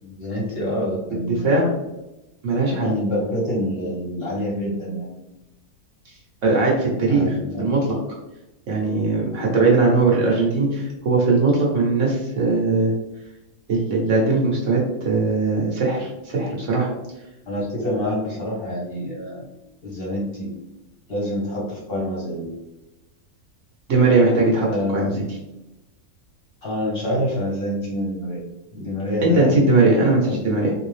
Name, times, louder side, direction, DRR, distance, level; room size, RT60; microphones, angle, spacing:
voice 1, 0.0-1.7 2.7-5.1 7.1-7.7 17.5-19.4 19.8-20.5 21.1-22.5 24.6-25.3 26.6-28.4 28.7-29.6 30.3-30.6, equal, 45° left, -4 dB, 1.0 m, -27 dB
voice 2, 2.4-2.9 6.4-7.9 8.7-12.9 13.7-16.9 23.9-24.7 24.9-25.1 29.2-30.7, right 3 dB, 60° right, -2 dB, 1.1 m, -19 dB
3.5 x 2.7 x 3.2 m, 0.96 s
omnidirectional pair, 1.6 m